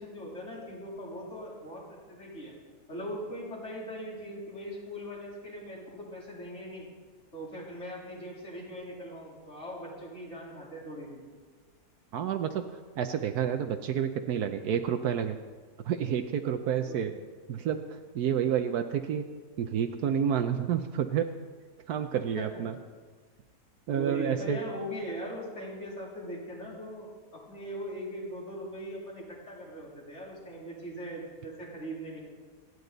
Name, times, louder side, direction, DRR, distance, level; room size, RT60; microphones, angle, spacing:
voice 1, 0.0-2.5 2.9-6.9 7.3-11.2 16.9-17.1 22.4-22.6 23.9-32.2, equal, 45° left, -5 dB, 3.9 m, -40 dB
voice 2, 12.1-15.4 15.8-17.1 17.5-19.3 19.6-21.3 21.9-22.7 23.9-24.6, right 8 dB, 75° right, 6 dB, 1.2 m, -29 dB
27.5 x 9.7 x 4.0 m, 1.5 s
omnidirectional pair, 1.7 m